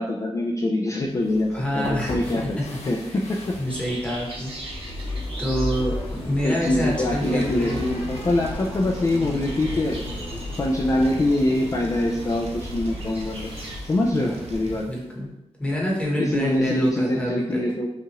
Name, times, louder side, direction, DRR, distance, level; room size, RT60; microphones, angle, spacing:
voice 1, 0.0-2.6 2.8-3.6 6.4-10.0 10.3-13.5 13.8-14.9 16.2-17.9, left 1 dB, 30° left, 0 dB, 0.4 m, -24 dB
sound 1, 1.1-15.0, left 2 dB, 90° left, 0.7 m, -35 dB
voice 2, 1.5-3.2 3.6-4.5 5.4-8.1 14.1-14.4 14.9-15.3 15.6-17.6, equal, 10° left, -4 dB, 1.0 m, -27 dB
sound 2, 3.7-13.8, right 1 dB, 60° right, 1.1 m, -41 dB
sound 3, 7.1-14.8, right 3 dB, 80° right, 0.5 m, -42 dB
5.5 x 2.4 x 2.9 m, 0.92 s
wide cardioid pair, 160°, 11 cm